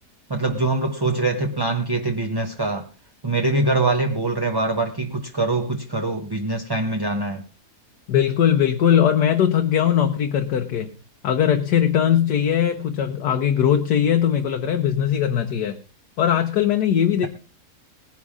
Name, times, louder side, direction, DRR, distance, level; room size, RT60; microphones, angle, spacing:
voice 1, 0.3-2.9 3.2-7.4, right 2 dB, 20° right, 0.7 m, -23 dB
voice 2, 8.1-10.9 11.2-15.8 16.2-17.3, left 9 dB, 80° left, 1.5 m, -20 dB
19.0 x 10.5 x 3.6 m
omnidirectional pair, 1.7 m